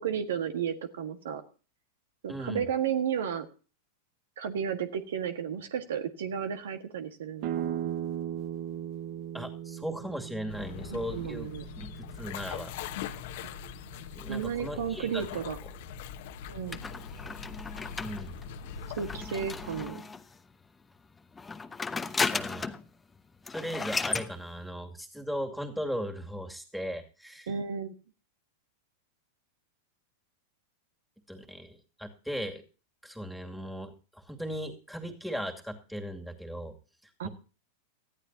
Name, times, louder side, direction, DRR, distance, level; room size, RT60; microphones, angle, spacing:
voice 1, 0.0-1.4 2.2-3.5 4.4-7.9 10.9-11.6 13.4-13.7 14.3-15.6 16.5-16.8 19.0-20.0 27.5-27.9 37.2-37.3, right 8 dB, 75° right, 8 dB, 1.6 m, -33 dB
voice 2, 2.3-2.6 9.3-11.5 11.8-12.7 14.1-15.3 18.0-18.4 22.3-22.7 23.5-27.5 31.3-32.6 33.0-36.7 37.0-37.3, equal, ahead, 4 dB, 2.5 m, -37 dB
sound 1, 7.4-13.0, right 10 dB, 50° right, 1.3 m, -38 dB
sound 2, 10.5-19.9, left 7 dB, 60° left, 1.3 m, -42 dB
sound 3, 16.7-20.4 21.3-22.9 23.2-23.3 23.5-24.3, left 4 dB, 15° left, 1.0 m, -34 dB
19.5 x 14.0 x 2.8 m, 0.35 s
hypercardioid pair, 100°, 0 cm